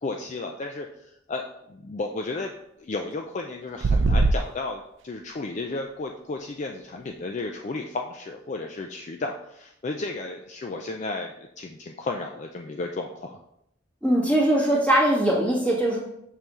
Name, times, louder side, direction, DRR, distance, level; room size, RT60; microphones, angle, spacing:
voice 1, 0.0-13.4, left 3 dB, 40° left, 3 dB, 0.4 m, -33 dB
sound 1, 3.8-4.4, right 3 dB, 90° right, 0.5 m, -20 dB
voice 2, 14.0-16.0, right 1 dB, 10° left, -5 dB, 1.7 m, -21 dB
6.7 x 5.5 x 3.1 m, 0.78 s
head